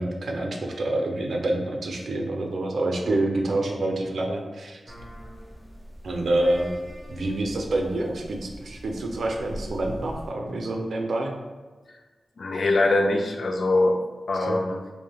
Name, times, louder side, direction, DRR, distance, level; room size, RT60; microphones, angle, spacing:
voice 1, 0.0-4.8 6.0-6.7 7.1-11.3 14.4-14.6, right 2 dB, 75° right, 2 dB, 0.4 m, -27 dB
sound 1, 4.9-10.3, equal, 10° left, 0.6 m, -42 dB
voice 2, 12.4-14.0 14.3-14.8, left 2 dB, 65° left, 4 dB, 0.3 m, -22 dB
3.2 x 2.1 x 2.2 m, 1.3 s
wide cardioid pair, 75°, 0 cm